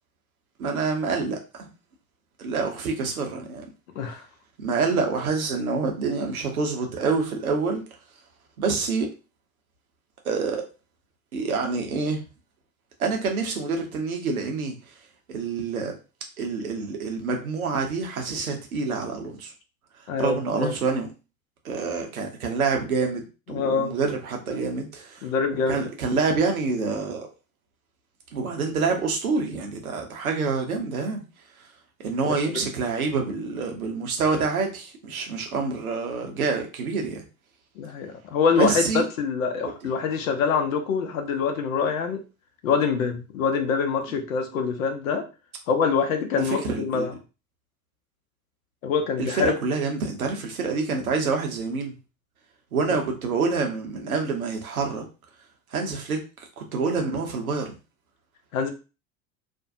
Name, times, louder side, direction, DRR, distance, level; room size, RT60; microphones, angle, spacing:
voice 1, 0.6-1.7 2.4-3.6 4.6-7.8 8.6-9.1 10.2-10.6 11.3-12.2 13.0-14.8 15.3-15.9 16.4-19.5 20.2-21.1 21.6-25.2 25.5-27.3 28.3-31.2 32.0-37.2 38.6-39.0 46.5-47.1 49.2-51.9 52.7-55.0 55.7-56.2 56.6-57.8, right 4 dB, 80° right, 3 dB, 0.8 m, -27 dB
voice 2, 20.1-20.7 23.5-23.9 24.5-24.6 25.2-25.8 32.3-32.4 37.8-38.8 39.2-42.2 42.6-45.2 45.7-47.1 48.8-49.5 58.5-58.7, left 5 dB, 70° left, 6 dB, 0.7 m, -25 dB
2.5 x 2.2 x 2.6 m, 0.31 s
figure-of-eight pair, 70°, 42 cm